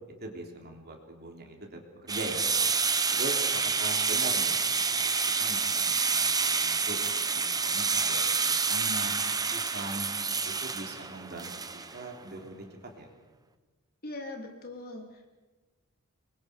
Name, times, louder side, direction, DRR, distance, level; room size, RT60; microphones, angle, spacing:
voice 1, 0.2-2.5 3.1-4.6 4.9-7.0 7.3-10.1 10.4-11.5 11.9-12.6 13.0-13.1, right 1 dB, 45° right, 2 dB, 3.6 m, -41 dB
sound 1, 2.1-12.1, right 5 dB, 15° right, 0.9 m, -28 dB
voice 2, 14.0-15.3, left 2 dB, 45° left, 2 dB, 3.4 m, -41 dB
27.0 x 23.0 x 5.3 m, 1.2 s
head